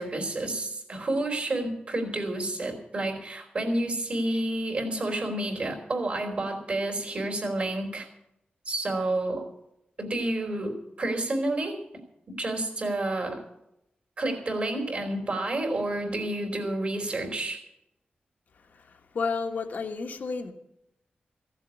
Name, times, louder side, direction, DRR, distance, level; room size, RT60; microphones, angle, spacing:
voice 1, 0.0-8.1 8.6-9.4 10.0-11.8 12.3-13.4 14.2-17.6, right 2 dB, 40° right, 2 dB, 3.2 m, -30 dB
voice 2, 18.6-20.5, left 4 dB, 65° left, 3 dB, 1.4 m, -32 dB
15.5 x 7.5 x 9.5 m, 0.83 s
wide cardioid pair, 180°, 3 cm